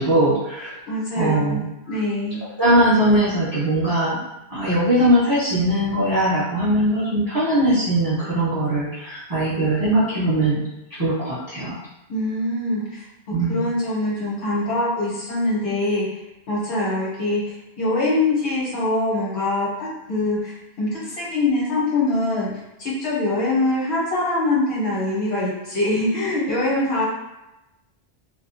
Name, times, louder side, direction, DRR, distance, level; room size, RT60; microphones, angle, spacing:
voice 1, 0.0-0.7 1.2-2.0 2.6-4.2 4.5-10.6 10.9-11.8 13.3-13.6, right 1 dB, 20° right, -10 dB, 0.8 m, -20 dB
voice 2, 0.9-2.4 12.1-13.0 13.5-16.1 16.5-19.7 20.1-22.5 22.8-27.1, left 2 dB, 85° left, -6 dB, 1.2 m, -23 dB
2.3 x 2.1 x 2.5 m, 0.94 s
omnidirectional pair, 1.1 m